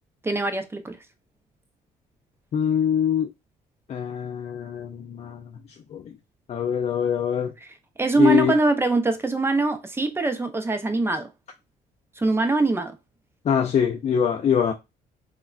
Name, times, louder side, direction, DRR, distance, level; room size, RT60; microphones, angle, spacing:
voice 1, 0.2-1.0 7.6-11.3 12.2-13.0, right 2 dB, 15° right, 0.5 m, -23 dB
voice 2, 2.5-3.3 3.9-5.4 5.9-6.0 6.5-7.5 8.2-8.5 13.5-14.7, left 8 dB, 40° left, 0.4 m, -23 dB
3.4 x 2.2 x 2.3 m
cardioid pair, 95°, 17 cm